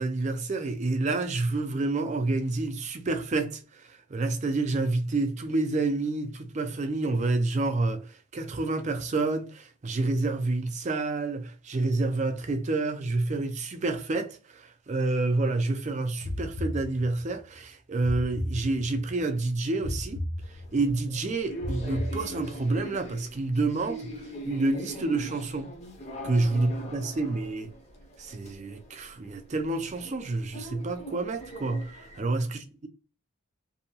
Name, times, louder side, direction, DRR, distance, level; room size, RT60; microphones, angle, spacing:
voice 1, 0.0-20.2 20.5-25.7 26.2-27.7 28.2-32.9, right 2 dB, 35° right, 0.4 m, -29 dB
sound 1, 16.2-17.4 18.0-19.2 19.8-21.0 21.6-22.8, left 1 dB, 70° left, 0.7 m, -35 dB
sound 2, 20.4-32.2, right 1 dB, 30° left, 0.6 m, -42 dB
2.6 x 2.2 x 2.8 m
head